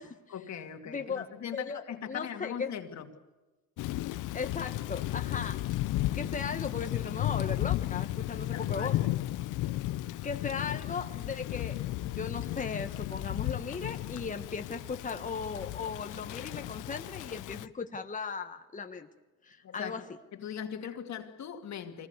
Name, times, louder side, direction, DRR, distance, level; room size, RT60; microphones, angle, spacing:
voice 1, 0.3-3.1 8.4-8.9 19.6-20.1 20.4-22.1, left 8 dB, 65° left, 2.6 m, -40 dB
voice 2, 0.9-1.3 1.5-2.7 4.3-5.6 6.1-9.0 10.2-19.1 19.4-20.0, left 5 dB, 25° left, 1.5 m, -37 dB
Thunder / Rain, 3.8-17.7, left 15 dB, 90° left, 0.8 m, -34 dB
25.0 x 20.0 x 8.3 m
cardioid pair, 90°, 30 cm